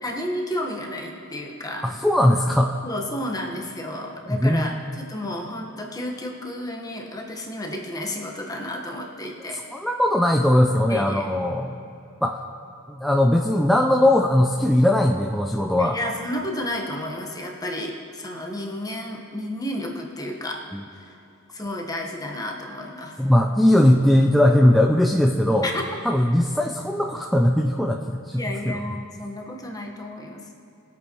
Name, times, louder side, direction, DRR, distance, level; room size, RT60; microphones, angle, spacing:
voice 1, 0.0-1.8 2.8-9.6 10.9-11.3 15.8-20.6 20.9-21.1 21.5-23.2 25.6-25.8 28.3-30.5, left 1 dB, 15° left, 0 dB, 1.3 m, -32 dB
voice 2, 1.8-2.8 4.3-4.7 9.7-11.8 12.2-12.4 12.9-16.0 20.7-20.8 23.2-25.7 26.0-28.8, left 1 dB, ahead, 0 dB, 0.4 m, -19 dB
21.0 x 8.4 x 3.1 m, 2.6 s
head